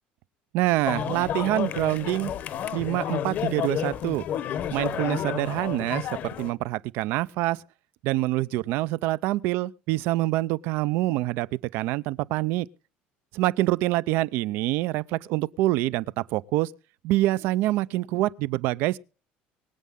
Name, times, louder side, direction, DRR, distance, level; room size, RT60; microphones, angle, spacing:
voice 1, 0.5-2.3 2.7-4.2 4.7-7.6 8.0-11.5 11.7-12.7 13.3-16.7 17.0-19.0, right 17 dB, 70° right, 0.6 m, -26 dB
sound 1, 0.8-6.5, left 9 dB, 45° left, 0.9 m, -31 dB
24.5 x 8.4 x 3.7 m
cardioid pair, 165°, 4 cm